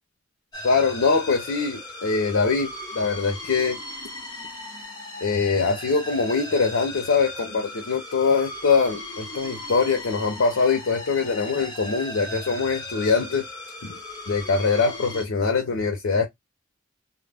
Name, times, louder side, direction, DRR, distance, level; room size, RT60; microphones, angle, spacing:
sound 1, 0.5-15.3, left 1 dB, 20° left, 0.8 m, -37 dB
voice 1, 0.6-3.8 5.2-13.4 13.8-14.0 14.3-16.2, left 4 dB, 80° left, 0.6 m, -23 dB
2.1 x 2.0 x 3.3 m
head